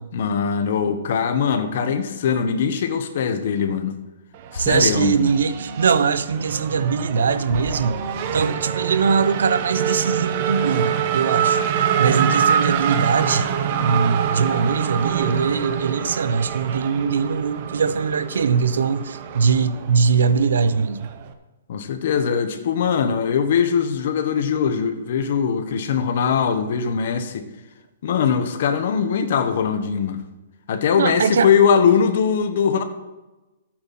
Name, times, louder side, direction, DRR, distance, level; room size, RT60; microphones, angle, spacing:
voice 1, 0.1-4.0 4.5-5.2 21.7-27.5 28.0-30.2 30.7-32.8, left 7 dB, 55° left, 9 dB, 1.2 m, -21 dB
Race car auto racing / Accelerating revving vroom, 4.3-21.3, right 8 dB, 40° right, 0.9 m, -25 dB
sound 1, 4.5-10.2, left 1 dB, 85° left, 1.9 m, -37 dB
voice 2, 4.6-8.0 8.3-11.6 12.0-13.5 13.8-21.1 31.0-31.5, right 5 dB, 80° right, 13 dB, 0.8 m, -21 dB
13.0 x 8.7 x 4.3 m, 1.1 s
hypercardioid pair, 160°, 0 cm